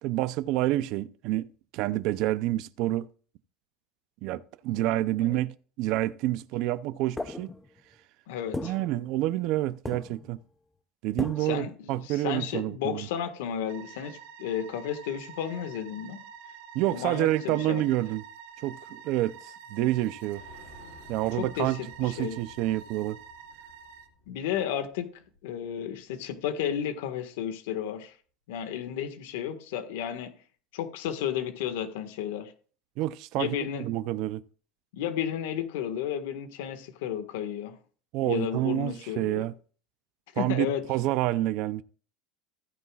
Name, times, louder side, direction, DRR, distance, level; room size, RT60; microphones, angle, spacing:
voice 1, 0.0-1.5 1.7-3.1 4.2-7.5 8.6-10.4 11.0-13.1 16.7-18.2 18.6-20.4 21.1-23.2 33.0-34.4 38.1-39.5 40.4-41.8, right 15 dB, 50° right, 0.5 m, -28 dB
sound 1, 7.2-7.9 8.5-9.6 9.8-10.4 11.2-11.7, left 2 dB, 10° left, 0.6 m, -37 dB
voice 2, 8.3-8.7 11.4-16.2 16.9-17.8 21.4-22.4 24.3-25.1 25.4-28.1 28.5-30.3 30.7-32.5 33.4-33.9 34.9-37.8 38.2-39.4 40.3-40.8, left 9 dB, 85° left, 1.6 m, -33 dB
sound 2, 13.7-24.1, right 7 dB, 90° right, 2.3 m, -47 dB
sound 3, 20.3-26.0 26.3-26.4 26.7-26.8, left 2 dB, 55° left, 6.4 m, -55 dB
15.0 x 9.7 x 2.4 m
cardioid pair, 165°, 0 cm